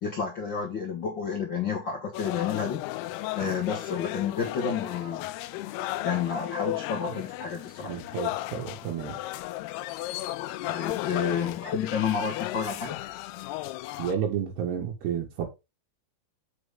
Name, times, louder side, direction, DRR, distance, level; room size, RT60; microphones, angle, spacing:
voice 1, 0.0-2.8 3.3-5.3 6.0-7.9 10.7-13.0, left 6 dB, 65° left, 1.1 m, -30 dB
sound 1, 2.1-14.1, left 16 dB, 85° left, 2.6 m, -35 dB
voice 2, 7.8-9.2 14.0-15.5, right 8 dB, 85° right, 3.6 m, -31 dB
6.9 x 6.7 x 3.6 m
omnidirectional pair, 4.6 m